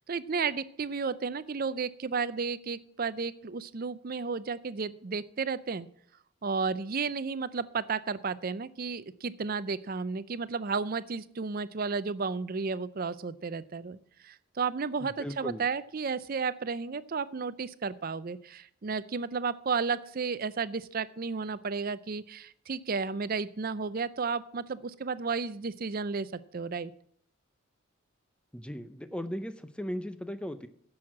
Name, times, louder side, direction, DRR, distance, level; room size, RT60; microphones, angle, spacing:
voice 1, 0.0-5.9 6.4-26.9, right 5 dB, 40° right, 16 dB, 0.5 m, -33 dB
voice 2, 15.0-15.6 28.5-30.7, equal, 5° left, 11 dB, 0.5 m, -37 dB
10.5 x 6.4 x 7.3 m, 0.65 s
head